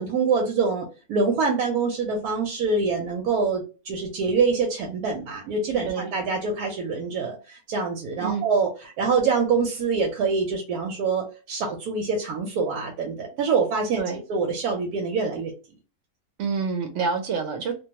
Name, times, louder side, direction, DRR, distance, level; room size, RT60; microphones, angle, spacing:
voice 1, 0.0-8.7 9.0-14.0 14.3-15.5, right 4 dB, 90° right, 1.1 m, -25 dB
voice 2, 16.4-17.7, right 5 dB, 60° right, 0.8 m, -27 dB
2.5 x 2.2 x 2.8 m
omnidirectional pair, 1.6 m